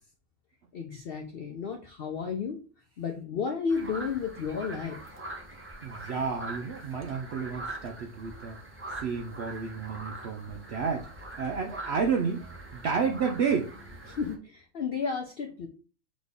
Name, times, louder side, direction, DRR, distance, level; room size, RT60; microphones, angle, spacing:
voice 1, 0.7-2.6 3.0-5.0 14.1-15.7, left 5 dB, 70° left, 0.5 m, -32 dB
sound 1, 3.7-14.4, right 2 dB, 15° right, 0.4 m, -43 dB
voice 2, 5.8-8.6 9.0-11.1 11.4-12.5 12.7-13.7, right 5 dB, 75° right, 0.6 m, -31 dB
4.1 x 3.0 x 3.4 m
omnidirectional pair, 1.6 m